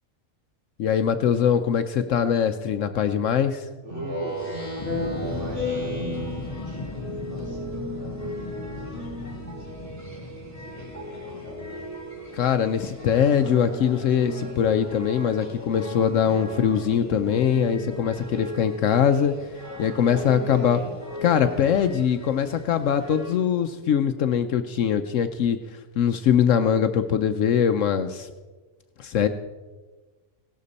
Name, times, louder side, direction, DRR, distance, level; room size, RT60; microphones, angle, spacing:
voice 1, 0.8-3.7 12.3-19.3 19.8-20.8 21.2-25.6 26.0-28.3 29.0-29.3, left 8 dB, 70° left, 9 dB, 1.0 m, -22 dB
voice 2, 3.8-4.4 5.0-5.9 6.3-6.9 7.2-10.2 10.5-11.8 20.1-20.9, right 1 dB, 60° right, -5 dB, 4.0 m, -41 dB
Speech synthesizer, 3.9-6.9, left 2 dB, 30° right, 3.2 m, -31 dB
sound 1, 4.2-23.3, equal, 10° right, 2.5 m, -38 dB
sound 2, 4.8-13.1 13.5-14.7 15.1-15.3, left 3 dB, 25° left, 1.1 m, -38 dB
17.0 x 12.0 x 4.1 m, 1.3 s
omnidirectional pair, 1.4 m